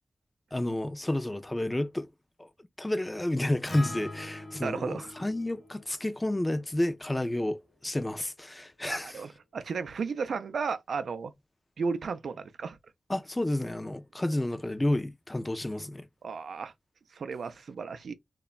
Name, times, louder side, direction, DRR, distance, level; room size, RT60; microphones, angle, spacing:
voice 1, 0.5-2.1 2.4-2.5 2.8-9.2 13.1-16.1, left 1 dB, 20° left, 0.4 m, -30 dB
Acoustic guitar, 3.7-7.9, left 2 dB, 40° left, 0.7 m, -45 dB
voice 2, 4.6-5.1 8.9-11.3 11.8-12.8 16.2-16.7 17.1-18.1, right 5 dB, 85° right, 0.4 m, -34 dB
3.0 x 2.2 x 2.3 m
cardioid pair, 50°, 0 cm